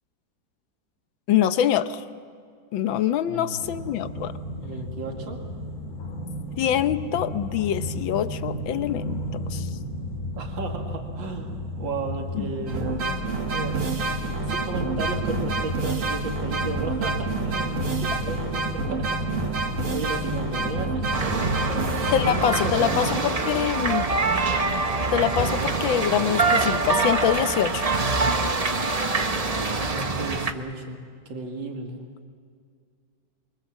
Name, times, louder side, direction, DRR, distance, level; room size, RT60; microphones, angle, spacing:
voice 1, 1.3-2.0 2.7-4.3 6.6-9.7 12.3-12.5 22.1-24.0 25.1-27.9, left 10 dB, 80° left, 11 dB, 1.6 m, -24 dB
voice 2, 3.3-3.7 4.6-5.4 10.4-19.6 19.9-21.4 22.2-23.3 29.8-31.0 31.3-32.0, right 3 dB, 75° right, 2 dB, 2.8 m, -34 dB
sound 1, 3.6-23.2, equal, 45° left, 3.0 m, -32 dB
sound 2, 12.7-23.3, right 3 dB, 45° right, 1.7 m, -29 dB
sound 3, 21.1-30.5, right 3 dB, 25° right, 0.8 m, -25 dB
26.5 x 24.0 x 7.3 m, 2.2 s
omnidirectional pair, 2.1 m